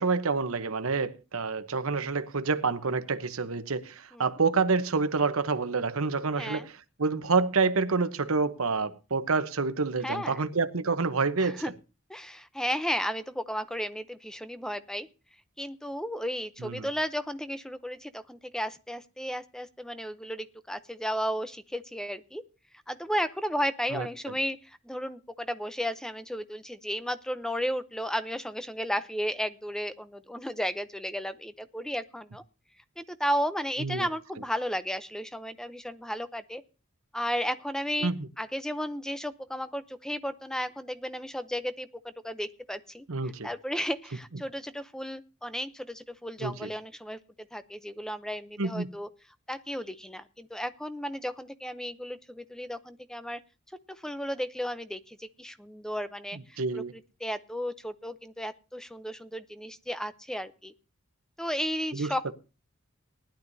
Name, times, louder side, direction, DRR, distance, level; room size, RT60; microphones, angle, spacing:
voice 1, 0.0-6.7 7.0-11.6 16.6-16.9 23.9-24.1 33.8-34.1 38.0-38.2 43.1-43.5 46.4-46.7 48.6-48.9 56.6-56.9 61.9-62.1, right 4 dB, 80° right, 0.9 m, -28 dB
voice 2, 6.4-6.7 10.0-10.4 11.4-11.7 12.1-15.1 15.6-22.4 22.9-32.4 33.0-36.6 37.1-38.1 38.4-49.1 49.5-53.4 53.9-56.8 57.2-60.7 61.4-62.3, equal, 5° left, 0.6 m, -34 dB
19.5 x 11.5 x 2.7 m
head